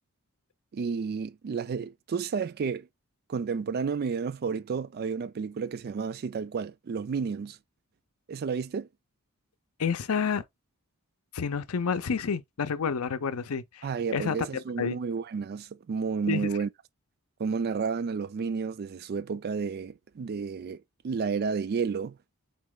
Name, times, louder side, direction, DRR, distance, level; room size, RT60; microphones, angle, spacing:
voice 1, 0.7-2.9 3.3-7.6 8.3-8.9 13.8-16.7 17.4-22.2, right 5 dB, 45° right, 0.3 m, -31 dB
voice 2, 9.8-10.4 11.3-14.9 16.3-16.5, left 6 dB, 75° left, 0.6 m, -29 dB
4.1 x 3.1 x 3.7 m
head